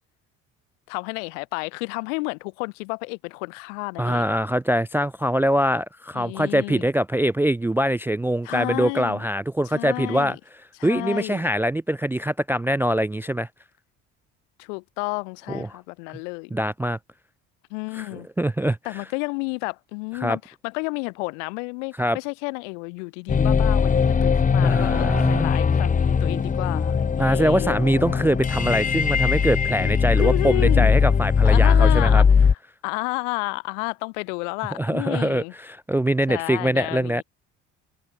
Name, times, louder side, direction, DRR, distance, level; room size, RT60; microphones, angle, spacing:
voice 1, 0.9-4.3 6.1-6.9 8.4-9.2 9.7-10.4 10.8-11.4 14.6-16.6 17.7-18.3 18.8-27.8 30.2-31.0 31.4-32.5 32.8-35.5 36.3-37.2, left 34 dB, 80° left, 5.8 m, -31 dB
voice 2, 4.0-10.4 10.8-13.5 15.5-15.8 16.5-17.0 17.9-18.8 20.2-20.4 22.0-22.2 24.6-25.5 27.2-32.2 34.8-37.2, right 1 dB, 5° right, 0.3 m, -23 dB
sound 1, 23.3-32.5, left 6 dB, 20° left, 0.7 m, -20 dB
hypercardioid pair, 70°, 36 cm